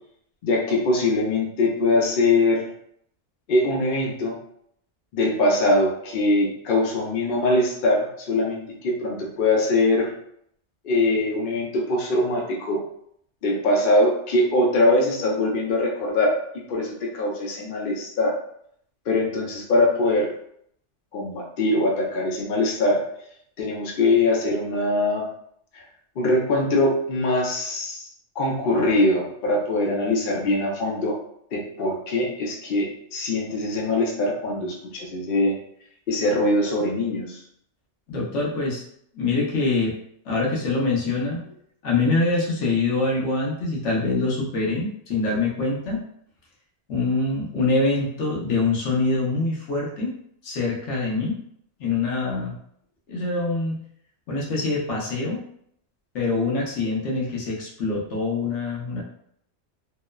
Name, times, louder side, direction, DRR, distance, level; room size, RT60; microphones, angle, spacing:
voice 1, 0.4-2.7 3.5-4.4 5.1-10.1 10.8-12.8 13.4-16.4 16.7-18.3 19.1-20.3 21.1-23.0 23.6-25.3 25.7-25.8 26.2-28.1 28.4-31.2 31.5-35.5 36.1-37.4, left 2 dB, 55° left, -1 dB, 0.7 m, -22 dB
voice 2, 38.1-38.8 39.1-39.9 40.2-41.4 41.8-46.0 46.9-50.1 50.4-51.4 51.8-52.6 53.1-53.8 54.3-55.4 56.1-59.0, left 3 dB, 75° left, -3 dB, 1.1 m, -24 dB
2.9 x 2.0 x 2.2 m, 0.68 s
omnidirectional pair, 1.2 m